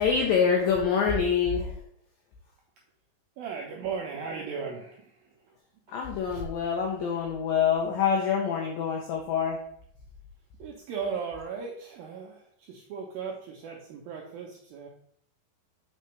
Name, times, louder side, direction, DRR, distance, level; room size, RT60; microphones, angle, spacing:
voice 1, 0.0-1.8 5.9-9.6, left 6 dB, 85° left, 1 dB, 2.0 m, -26 dB
voice 2, 3.4-5.6 10.6-14.9, right 5 dB, 85° right, 0 dB, 2.1 m, -37 dB
6.7 x 5.5 x 3.1 m, 0.65 s
omnidirectional pair, 5.0 m